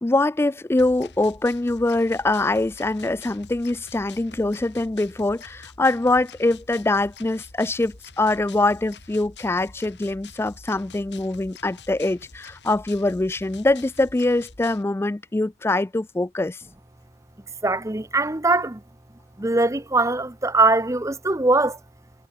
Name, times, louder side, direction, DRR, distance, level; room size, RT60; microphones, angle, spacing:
voice 1, 0.0-16.6, left 2 dB, 15° left, 0.3 m, -23 dB
sound 1, 0.8-14.8, left 4 dB, 80° left, 2.3 m, -46 dB
voice 2, 17.6-18.8 19.4-21.8, right 2 dB, 15° right, 1.0 m, -21 dB
head